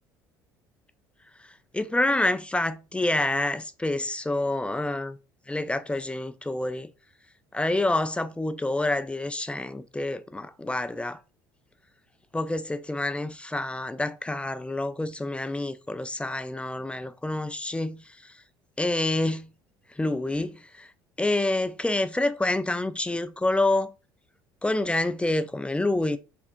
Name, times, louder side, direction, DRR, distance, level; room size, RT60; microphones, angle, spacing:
voice 1, 1.7-5.2 5.5-6.9 7.5-11.2 12.3-18.0 18.8-19.5 20.0-20.9 21.2-23.9 24.6-26.2, left 2 dB, 10° left, 0.5 m, -27 dB
5.8 x 3.4 x 2.6 m
figure-of-eight pair, 60°, 11 cm